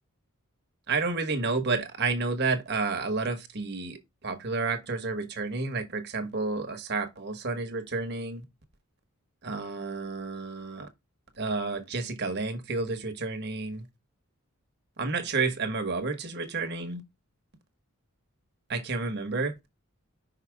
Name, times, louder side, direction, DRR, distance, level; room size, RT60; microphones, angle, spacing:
voice 1, 0.9-8.4 9.4-10.9 11.4-13.8 15.0-17.0 18.7-19.5, right 3 dB, 50° right, 1.3 m, -30 dB
5.7 x 4.9 x 3.4 m
head